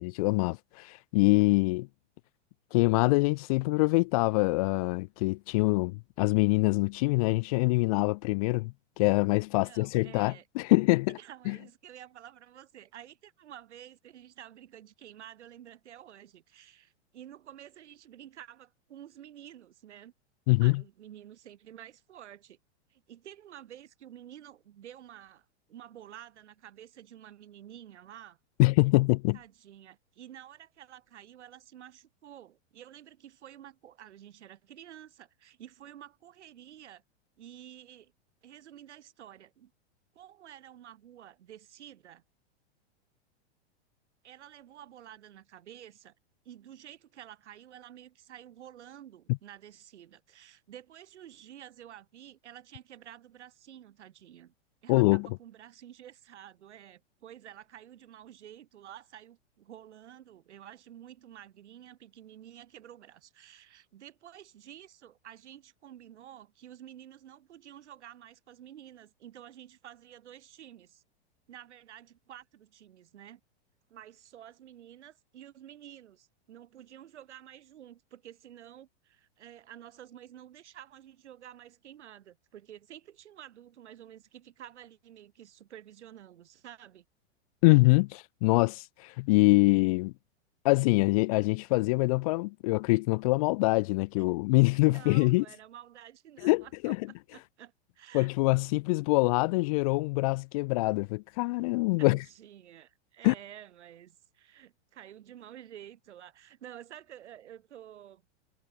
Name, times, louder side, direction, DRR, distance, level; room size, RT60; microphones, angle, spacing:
voice 1, 0.0-1.9 2.7-11.2 11.5-11.6 20.5-20.8 28.6-29.4 54.9-55.3 87.6-90.1 90.6-95.4 96.4-97.0 98.1-102.2 103.2-103.3, left 24 dB, 35° left, 0.5 m, -25 dB
voice 2, 9.6-10.5 11.2-20.1 20.6-22.6 22.9-28.4 29.3-37.0 37.4-38.1 38.4-39.7 40.1-42.2 44.2-46.1 46.4-54.5 54.8-71.0 71.5-73.4 73.9-87.1 94.2-94.3 94.8-98.3 101.8-108.2, right 11 dB, 80° right, 7.6 m, -50 dB
supercardioid pair, 150°, 34 cm